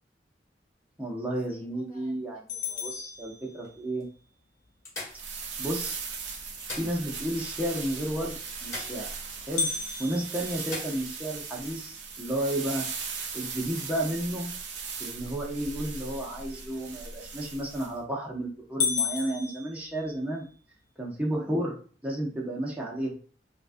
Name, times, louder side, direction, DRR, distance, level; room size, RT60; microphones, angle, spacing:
voice 1, 1.0-4.1 5.6-6.0 6.8-9.1 9.5-9.7 10.0-12.8 13.3-14.5 15.0-20.5 21.0-21.8 22.0-23.1, right 1 dB, 10° right, -3 dB, 0.6 m, -32 dB
sound 1, 1.3-3.0 3.6-3.7 4.0-4.1 4.8-5.8 6.4-7.4 7.7-7.8 8.6-9.5 9.8-9.9 10.6-11.2 13.1-13.3, left 1 dB, 15° left, 1.0 m, -43 dB
sound 2, 2.5-4.1 9.6-11.7 12.2-12.3 12.8-12.9 13.6-13.9 17.5-17.9 18.3-18.4 18.8-20.5, left 6 dB, 40° left, 0.4 m, -33 dB
sound 3, 5.1-17.9, right 5 dB, 85° right, 0.5 m, -38 dB
3.2 x 2.3 x 2.5 m, 0.42 s
head